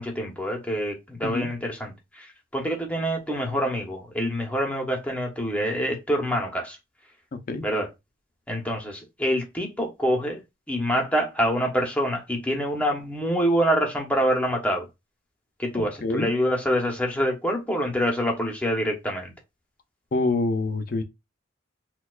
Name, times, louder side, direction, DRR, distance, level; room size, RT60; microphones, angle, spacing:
voice 1, 0.0-2.3 2.5-6.8 7.6-7.9 8.5-10.4 10.7-14.9 15.6-19.3, equal, 5° left, 0.7 m, -26 dB
voice 2, 15.7-16.3 20.1-21.0, left 2 dB, 45° left, 0.5 m, -26 dB
4.2 x 2.3 x 2.3 m
head